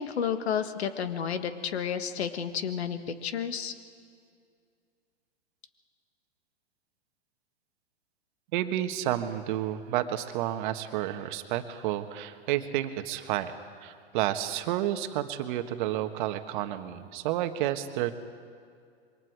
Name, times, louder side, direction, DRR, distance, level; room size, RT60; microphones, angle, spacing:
voice 1, 0.0-3.7, left 7 dB, 75° left, 9 dB, 1.7 m, -31 dB
voice 2, 8.5-13.5 13.8-18.1, right 12 dB, 50° right, 8 dB, 1.5 m, -30 dB
27.0 x 23.0 x 4.8 m, 2.2 s
hypercardioid pair, 125°, 32 cm